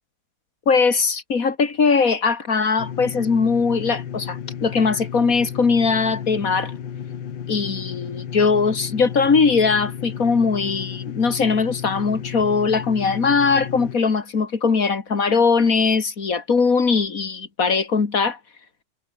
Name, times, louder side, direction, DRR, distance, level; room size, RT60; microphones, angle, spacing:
voice 1, 0.7-6.7 7.5-18.4, left 5 dB, 40° left, 2.6 m, -20 dB
sound 1, 2.8-14.0, left 8 dB, 65° left, 2.1 m, -33 dB
omnidirectional pair, 2.2 m